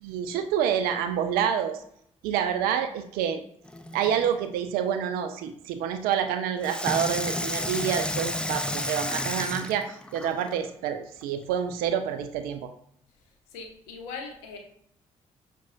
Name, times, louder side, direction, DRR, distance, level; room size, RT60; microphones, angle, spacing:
voice 1, 0.0-1.8 2.2-3.4 3.9-12.7, right 8 dB, 65° right, 8 dB, 0.4 m, -28 dB
Water tap faucet / Sink (filling or washing), 3.7-4.3 6.6-10.6 11.2-11.3, left 1 dB, 5° left, 0.4 m, -32 dB
voice 2, 13.3-14.6, left 4 dB, 70° left, 2 dB, 0.7 m, -40 dB
5.9 x 2.2 x 2.7 m, 0.70 s
figure-of-eight pair, 40°, 17 cm